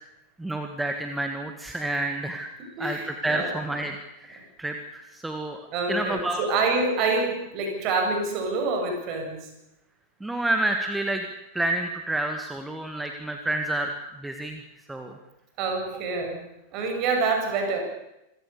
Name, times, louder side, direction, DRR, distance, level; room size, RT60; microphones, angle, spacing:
voice 1, 0.4-2.5 2.8-5.6 5.9-6.4 10.2-11.2 11.5-13.9 14.2-14.6 14.9-15.2, right 1 dB, 5° right, 5 dB, 1.9 m, -29 dB
voice 2, 2.6-3.5 5.7-9.5 15.6-16.4 16.7-17.8, right 3 dB, 40° right, 3 dB, 6.9 m, -27 dB
26.5 x 17.0 x 6.9 m, 0.91 s
figure-of-eight pair, 90°, 0 cm